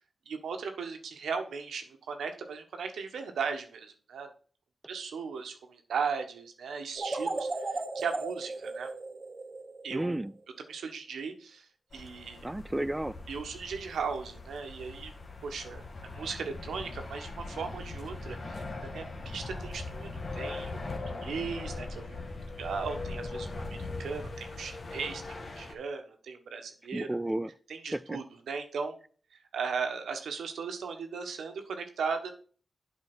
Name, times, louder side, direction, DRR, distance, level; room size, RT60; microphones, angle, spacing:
voice 1, 0.3-4.3 4.9-8.9 9.8-10.3 10.7-11.6 11.9-12.4 13.3-15.1 15.4-15.8 16.1-20.8 21.2-22.2 22.6-27.1 27.7-28.9 29.5-32.3, right 5 dB, 90° right, 1.2 m, -37 dB
sound 1, 7.0-10.1, right 3 dB, 40° right, 1.4 m, -36 dB
voice 2, 9.9-10.3 12.4-13.2 26.9-27.5 27.9-28.2, right 1 dB, 15° right, 0.3 m, -32 dB
sound 2, 11.9-25.7, left 3 dB, 55° left, 1.6 m, -40 dB
8.2 x 4.9 x 6.1 m
cardioid pair, 55°, 0 cm